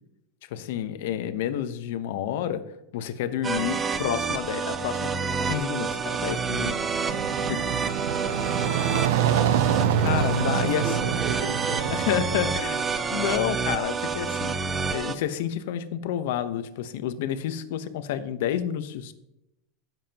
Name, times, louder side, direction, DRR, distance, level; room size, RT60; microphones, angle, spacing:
voice 1, 0.5-2.6 2.9-5.1 5.4-6.8 7.5-7.6 10.0-10.9 11.9-12.8 13.1-14.5 14.9-19.1, left 10 dB, 65° left, 11 dB, 0.9 m, -29 dB
sound 1, 3.4-15.1, right 5 dB, 15° right, 0.5 m, -28 dB
sound 2, 6.5-12.5, right 9 dB, 85° right, 0.6 m, -26 dB
voice 2, 7.0-9.2 10.3-13.1, right 3 dB, 45° right, 2 dB, 2.8 m, -39 dB
16.0 x 7.4 x 2.9 m, 0.87 s
supercardioid pair, 170°, 0 cm